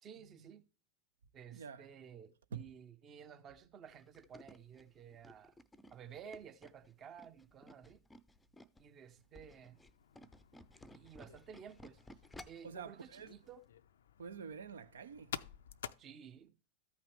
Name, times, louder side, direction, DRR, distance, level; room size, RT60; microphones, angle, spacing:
voice 1, 0.0-0.7 1.3-5.6 5.9-8.0 8.8-9.8 10.9-12.0 12.5-13.6 16.0-16.6, right 8 dB, 30° right, 0.8 m, -54 dB
voice 2, 1.5-1.9 2.5-2.7 12.6-13.3 14.2-15.4, right 6 dB, 65° right, 0.6 m, -47 dB
Tools, 3.9-8.9 9.2-12.7 13.2-13.3 13.6-13.7, left 1 dB, 5° left, 0.6 m, -57 dB
sound 1, 9.6-16.0, left 9 dB, 60° left, 0.4 m, -51 dB
14.0 x 5.7 x 3.2 m
figure-of-eight pair, 90°, 0 cm